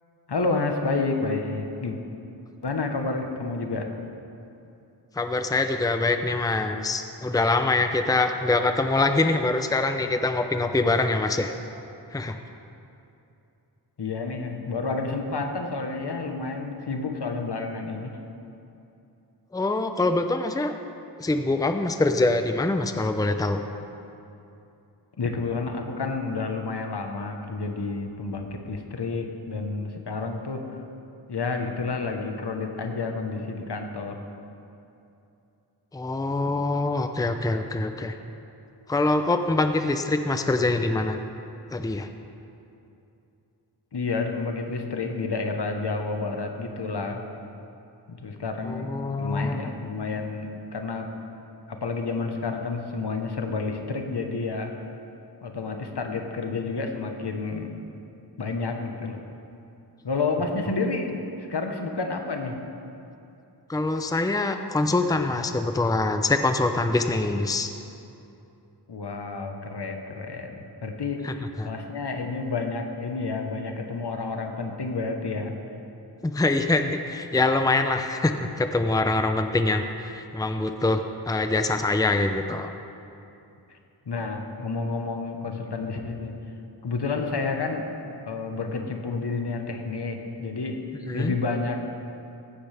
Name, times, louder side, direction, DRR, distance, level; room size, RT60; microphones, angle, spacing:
voice 1, 0.3-2.0 2.6-4.0 14.0-18.2 25.2-30.7 31.3-34.2 43.9-47.3 48.1-48.9 49.2-51.1 51.7-54.8 55.4-57.8 58.4-59.2 60.0-62.6 68.9-75.6 83.7-83.8 84.0-86.3 86.8-87.9 88.2-90.8 91.1-91.8, left 3 dB, 70° left, 4 dB, 1.2 m, -30 dB
voice 2, 5.1-11.5 12.1-12.4 19.5-20.8 21.2-23.6 35.9-38.1 38.9-41.2 41.7-42.1 48.6-49.6 63.7-67.7 71.2-71.7 76.2-82.7 91.1-91.3, left 2 dB, 10° left, 7 dB, 0.6 m, -24 dB
16.0 x 12.0 x 3.5 m, 2.7 s
wide cardioid pair, 65°, 42 cm